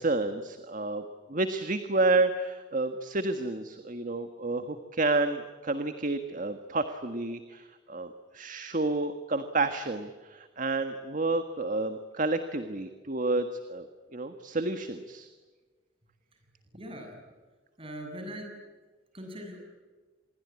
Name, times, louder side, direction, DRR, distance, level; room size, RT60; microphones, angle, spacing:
voice 1, 0.0-13.8 14.1-15.3, right 2 dB, 45° right, 8 dB, 1.6 m, -30 dB
voice 2, 16.7-17.2 17.8-18.5 19.1-19.6, equal, 30° right, 4 dB, 7.8 m, -41 dB
27.5 x 22.0 x 9.7 m, 1.3 s
head